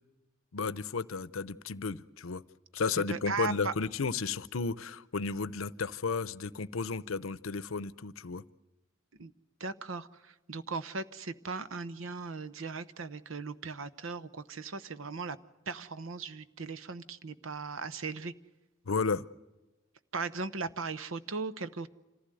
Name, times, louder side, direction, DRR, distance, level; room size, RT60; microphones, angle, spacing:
voice 1, 0.5-2.4 2.7-8.4 18.9-19.2, left 4 dB, 85° left, 17 dB, 0.7 m, -33 dB
voice 2, 3.0-3.7 9.2-9.3 9.6-10.1 10.5-15.4 15.7-18.3 20.1-21.9, right 4 dB, 75° right, 14 dB, 0.9 m, -37 dB
26.5 x 15.0 x 7.8 m, 1.1 s
head